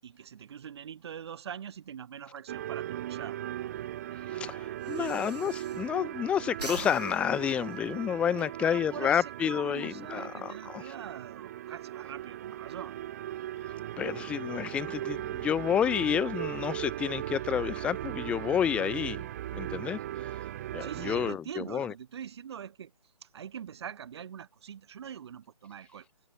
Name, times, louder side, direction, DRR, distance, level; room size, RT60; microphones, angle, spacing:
voice 1, 0.0-3.4 4.9-5.2 8.4-13.0 20.8-22.9 23.2-26.1, right 8 dB, 40° right, 7.7 m, -43 dB
sound 1, 2.5-21.3, right 13 dB, 25° right, 0.8 m, -38 dB
Breathing, 3.6-6.2 6.5-8.5, right 2 dB, 80° right, 6.6 m, -44 dB
voice 2, 4.3-10.8 14.0-20.0 20.7-21.9, left 9 dB, 5° left, 0.7 m, -30 dB
figure-of-eight pair, 145°, 20 cm